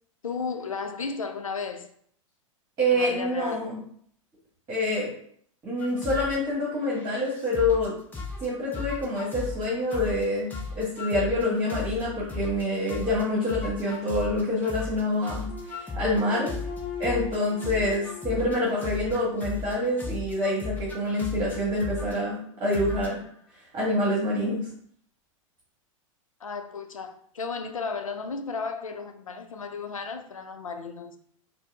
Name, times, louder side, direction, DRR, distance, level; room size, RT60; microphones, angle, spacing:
voice 1, 0.2-1.9 2.9-3.7 26.4-31.2, left 5 dB, 85° left, 0.4 m, -34 dB
voice 2, 2.8-3.8 4.7-5.1 5.6-8.0 8.4-10.5 10.8-15.4 15.7-16.5 17.0-23.2 23.7-24.6, left 1 dB, 25° right, 1.3 m, -26 dB
sound 1, 5.8-6.4 6.8-7.9 8.1-8.5 8.7-9.6 9.9-10.2 10.5-12.6 12.9-17.4 17.6-19.7 20.0-22.1 22.7-23.3, left 3 dB, 10° left, 0.8 m, -36 dB
sound 2, 15.5-19.8, left 5 dB, 35° left, 0.8 m, -41 dB
4.7 x 2.0 x 3.4 m
figure-of-eight pair, 95°, 17 cm